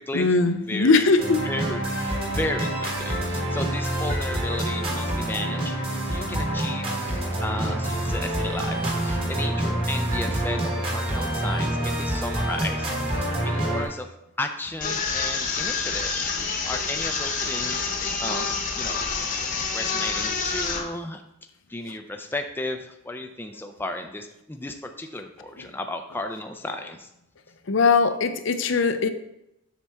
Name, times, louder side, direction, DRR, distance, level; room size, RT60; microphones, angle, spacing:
voice 1, 0.1-1.5 27.7-29.1, left 4 dB, 65° left, 0.6 m, -20 dB
voice 2, 0.7-1.1 1.4-14.1 14.4-21.2 21.7-27.1, left 2 dB, 10° left, 0.4 m, -34 dB
sound 1, 1.2-13.8, right 1 dB, 25° right, 1.5 m, -27 dB
sound 2, 14.8-20.8, left 4 dB, 40° left, 1.0 m, -27 dB
7.3 x 6.6 x 3.5 m
head